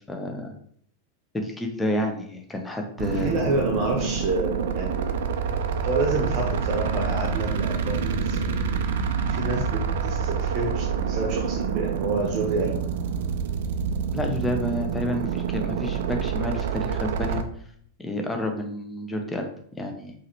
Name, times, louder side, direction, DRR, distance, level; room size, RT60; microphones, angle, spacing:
voice 1, 0.1-0.5 1.3-3.3 14.1-17.4 18.0-19.5 19.8-20.1, left 1 dB, 10° left, 3 dB, 0.7 m, -29 dB
sound 1, 3.0-17.4, right 6 dB, 55° right, 0.4 m, -27 dB
voice 2, 3.1-5.0 5.8-8.7 9.3-12.8, right 3 dB, 40° right, 0 dB, 0.9 m, -28 dB
4.8 x 3.1 x 2.9 m, 0.63 s
figure-of-eight pair, 90°, 0 cm